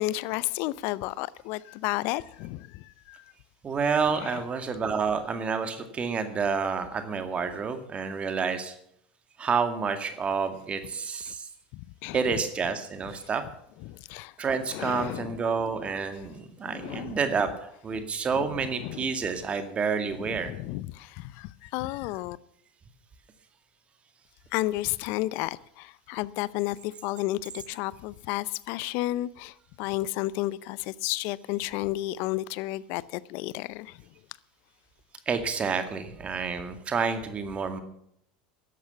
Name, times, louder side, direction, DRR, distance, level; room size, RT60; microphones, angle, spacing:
voice 1, 0.0-3.2 4.2-4.4 11.3-11.4 11.7-12.2 13.8-14.3 14.7-15.4 16.7-17.2 18.3-19.1 20.3-22.4 24.5-34.0, left 17 dB, 55° left, 0.6 m, -32 dB
voice 2, 3.6-8.7 9.4-11.5 12.1-13.4 14.4-20.5 35.3-37.8, right 5 dB, 30° right, 2.0 m, -29 dB
13.0 x 11.0 x 7.0 m
hypercardioid pair, 80°, 4 cm